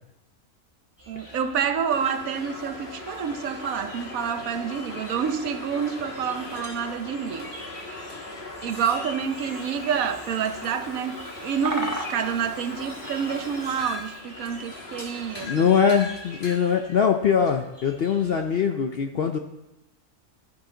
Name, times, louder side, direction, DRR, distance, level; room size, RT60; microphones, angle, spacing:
sound 1, 1.0-18.6, left 1 dB, 10° left, 2.7 m, -46 dB
voice 1, 1.1-7.5 8.6-11.2 11.4-15.7, right 7 dB, 70° right, 9 dB, 1.1 m, -28 dB
sound 2, 1.9-16.6, left 2 dB, 35° left, 1.7 m, -39 dB
Bird vocalization bird call bird song, 9.2-14.2, equal, 15° right, 1.0 m, -39 dB
voice 2, 15.4-19.4, left 7 dB, 60° left, 5 dB, 0.6 m, -22 dB
12.5 x 9.6 x 3.9 m, 0.93 s
omnidirectional pair, 1.6 m